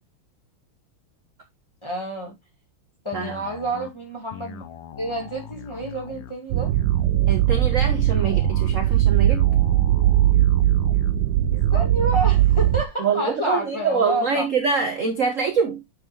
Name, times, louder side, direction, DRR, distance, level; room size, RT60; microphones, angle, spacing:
voice 1, 1.8-2.4 3.0-4.6 5.0-6.7 11.5-14.4, right 1 dB, 15° left, 2.4 m, -29 dB
sound 1, 3.1-12.7, left 8 dB, 90° left, 1.7 m, -41 dB
sound 2, 6.5-12.8, right 13 dB, 75° right, 1.4 m, -19 dB
voice 2, 7.3-9.4 13.0-15.8, right 5 dB, 45° right, 1.2 m, -24 dB
9.8 x 4.7 x 3.0 m
omnidirectional pair, 2.3 m